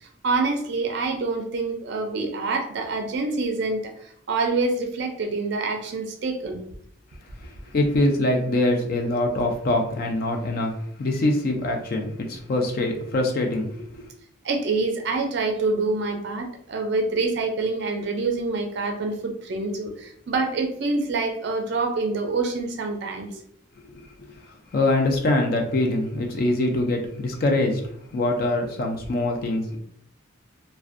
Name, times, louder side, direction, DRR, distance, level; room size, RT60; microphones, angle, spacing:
voice 1, 0.0-6.6 14.4-23.3, right 3 dB, 55° right, 4 dB, 0.4 m, -26 dB
voice 2, 7.4-14.0 23.9-29.8, left 2 dB, 45° left, 2 dB, 0.3 m, -24 dB
2.5 x 2.1 x 2.4 m, 0.70 s
head